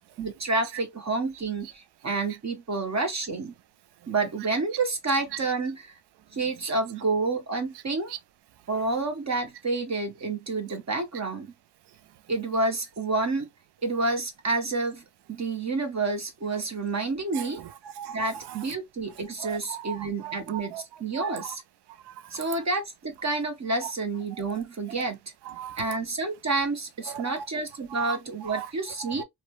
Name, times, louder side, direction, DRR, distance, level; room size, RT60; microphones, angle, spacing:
voice 1, 0.2-3.5 4.1-6.0 6.3-8.1 8.7-11.5 12.3-13.5 13.8-17.6 18.1-21.6 22.3-25.2 25.8-29.2, right 3 dB, 40° right, 0.9 m, -29 dB
voice 2, 17.3-18.7 19.4-20.8 21.1-21.5 22.1-22.6 23.8-23.9 24.9-25.0 25.4-26.0 27.1-27.5 27.9-28.7 29.0-29.2, right 9 dB, 75° right, 0.5 m, -39 dB
3.0 x 2.2 x 2.4 m
cardioid pair, 60°, 41 cm